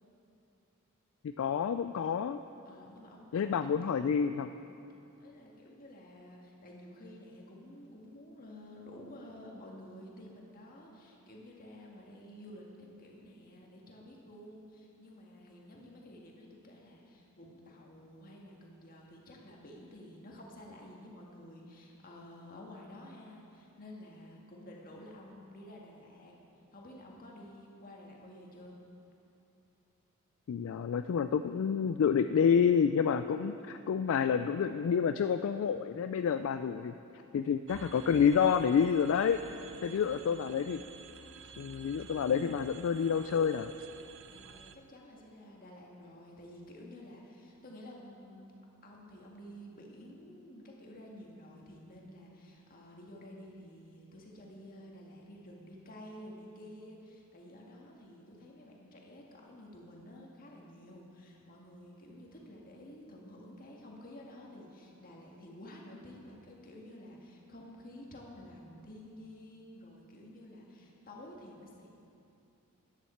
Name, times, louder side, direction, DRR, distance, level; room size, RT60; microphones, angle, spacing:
voice 1, 1.2-2.4 3.3-4.5 30.5-36.9 37.3-39.4 39.8-40.8 41.6-43.7, left 7 dB, 65° left, 9 dB, 0.3 m, -28 dB
voice 2, 2.7-4.2 5.2-26.3 26.7-28.8 39.5-40.4 41.2-41.4 44.3-48.5 48.8-71.9, left 1 dB, 40° left, -2 dB, 1.7 m, -51 dB
sound 1, 37.7-44.8, right 6 dB, 60° right, 0.5 m, -51 dB
13.5 x 10.0 x 4.4 m, 2.8 s
head